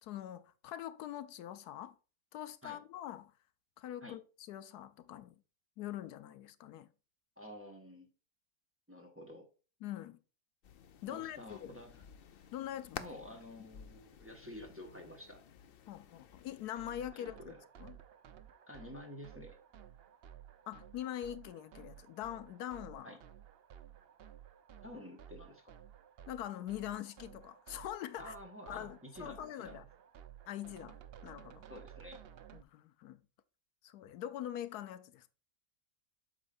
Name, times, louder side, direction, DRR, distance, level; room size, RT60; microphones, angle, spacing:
voice 1, 0.0-1.9 2.3-3.3 3.8-5.4 5.8-6.9 9.8-10.2 11.0-11.7 12.5-13.2 15.9-18.0 20.7-23.1 26.3-28.3 28.7-29.8 30.5-31.7 32.5-33.2 33.8-35.3, left 12 dB, 85° left, 1.2 m, -43 dB
voice 2, 7.4-8.1 8.9-9.5 11.1-12.0 13.0-15.4 17.1-17.6 18.7-19.6 23.0-23.2 24.8-25.7 28.2-29.8 31.7-32.2, left 1 dB, 10° right, 1.3 m, -50 dB
sound 1, 10.6-16.7, left 8 dB, 65° left, 0.5 m, -52 dB
sound 2, 16.8-32.6, right 10 dB, 60° right, 0.6 m, -55 dB
8.1 x 6.2 x 2.5 m
omnidirectional pair, 1.6 m